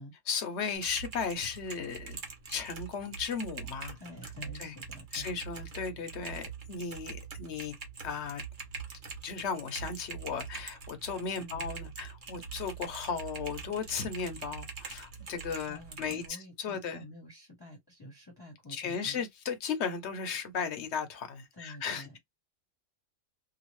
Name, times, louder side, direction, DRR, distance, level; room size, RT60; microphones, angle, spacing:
voice 1, 0.3-2.2 2.5-4.0 4.6-4.7 5.1-7.8 8.0-8.4 9.2-17.0 18.7-22.2, left 6 dB, 55° left, 1.0 m, -36 dB
Typing, 0.7-16.3, right 6 dB, 40° right, 0.9 m, -44 dB
voice 2, 4.0-5.4 11.4-11.7 15.4-19.2 21.5-22.1, equal, 20° left, 1.0 m, -49 dB
2.9 x 2.3 x 3.0 m
omnidirectional pair, 1.5 m